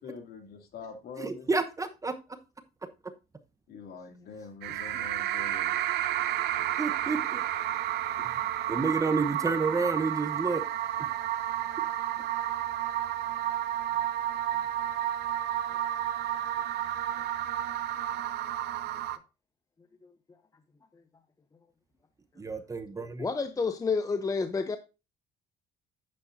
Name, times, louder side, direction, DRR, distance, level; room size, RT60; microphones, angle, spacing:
voice 1, 0.0-1.5 3.7-5.8, left 5 dB, 65° left, 2.5 m, -44 dB
voice 2, 1.2-2.1 4.9-5.0 6.8-7.4 8.2-8.4 8.7-10.6 22.4-23.3, right 4 dB, 20° right, 1.0 m, -30 dB
sound 1, 4.6-19.2, right 12 dB, 75° right, 0.7 m, -31 dB
voice 3, 23.2-24.8, left 4 dB, 20° left, 0.7 m, -29 dB
10.5 x 8.6 x 2.7 m
cardioid pair, 110°, 17 cm